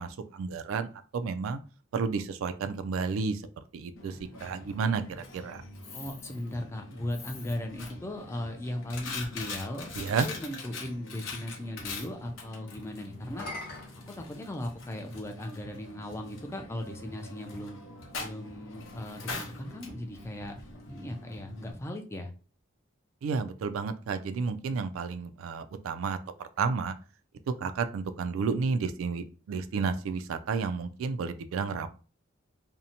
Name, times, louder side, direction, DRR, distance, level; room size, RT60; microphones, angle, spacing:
voice 1, 0.0-1.6 1.9-3.4 3.7-5.6 10.0-10.3 23.2-26.9 27.6-31.9, right 5 dB, 85° right, 10 dB, 0.3 m, -31 dB
Coin (dropping), 4.0-21.7, left 3 dB, 85° left, 0.8 m, -43 dB
voice 2, 5.9-9.9 10.2-13.5 14.1-17.8 18.2-20.6 20.9-22.3, left 1 dB, 15° left, 4 dB, 0.3 m, -37 dB
sound 1, 9.2-10.4 13.2-15.0 15.9-16.0 19.7-21.3, left 2 dB, 50° left, 0.9 m, -46 dB
2.6 x 2.1 x 2.7 m, 0.36 s
head